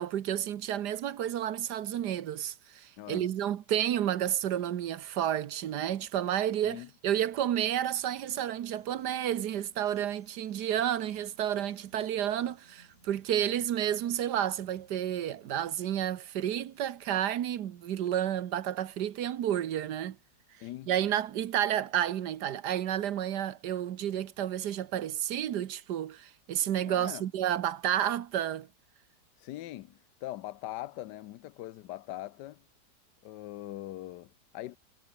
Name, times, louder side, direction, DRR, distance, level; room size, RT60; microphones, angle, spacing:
voice 1, 0.0-20.2 20.9-28.7, right 10 dB, 75° right, 1.5 m, -31 dB
voice 2, 3.0-3.3 6.6-6.9 20.6-20.9 26.9-27.2 29.4-32.6 33.2-34.8, left 15 dB, 80° left, 1.3 m, -42 dB
sound 1, 8.6-27.1, right 2 dB, 45° right, 7.3 m, -70 dB
omnidirectional pair, 1.8 m